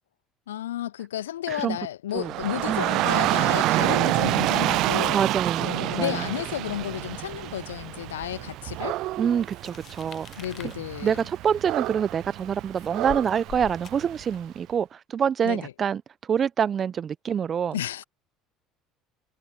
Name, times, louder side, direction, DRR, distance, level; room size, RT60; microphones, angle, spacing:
voice 1, 0.5-5.2 5.6-9.0 10.4-11.2 15.4-15.7 17.7-18.0, left 12 dB, 80° left, 0.3 m, -32 dB
Dog / Rain, 2.2-14.3, right 17 dB, 60° right, 0.3 m, -28 dB
voice 2, 2.7-3.0 5.1-6.3 9.2-10.4 11.0-16.0 16.3-17.7, right 8 dB, 40° right, 1.0 m, -26 dB
sound 1, 9.4-14.6, left 9 dB, 45° left, 1.2 m, -45 dB
hypercardioid pair, 65°, 0 cm